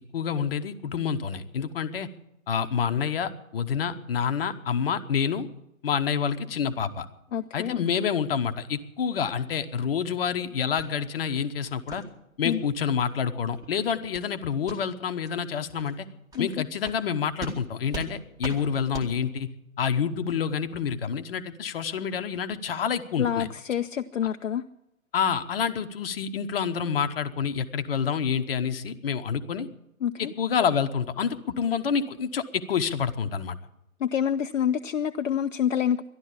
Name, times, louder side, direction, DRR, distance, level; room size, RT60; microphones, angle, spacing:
voice 1, 0.1-2.1 2.5-5.5 5.8-7.1 7.5-12.0 12.4-16.1 16.4-19.5 19.8-23.5 25.1-29.7 30.2-33.6, left 7 dB, 40° left, 9 dB, 1.0 m, -28 dB
voice 2, 7.3-7.8 12.4-12.6 16.3-16.6 23.2-24.7 30.0-30.3 34.0-36.0, left 9 dB, 60° left, 6 dB, 0.6 m, -27 dB
sound 1, 10.8-10.9 11.3-11.5 11.9-12.0 12.4-12.6 13.0-13.1 13.5-13.7 14.1-14.3 14.6-14.8 15.2-15.3 15.8-15.9 16.3-16.4 16.8-17.0 17.4-17.6 17.9-18.1 18.4-18.6 18.9-19.1, right 2 dB, 10° right, 1.7 m, -38 dB
13.0 x 11.5 x 8.4 m, 0.86 s
figure-of-eight pair, 135°, 43 cm